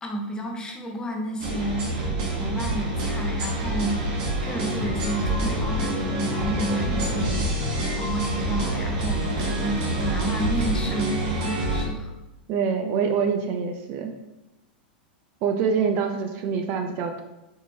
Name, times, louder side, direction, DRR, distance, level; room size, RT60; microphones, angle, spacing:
voice 1, 0.0-7.7 8.0-12.1, right 1 dB, 15° left, 2 dB, 0.6 m, -31 dB
sound 1, 1.4-11.8, right 1 dB, 60° right, 1.2 m, -27 dB
sound 2, 4.7-11.6, left 1 dB, 40° left, 1.2 m, -35 dB
voice 2, 12.5-14.1 15.4-17.2, right 6 dB, 45° right, 6 dB, 0.4 m, -25 dB
4.5 x 3.0 x 2.7 m, 0.98 s
hypercardioid pair, 125°, 5 cm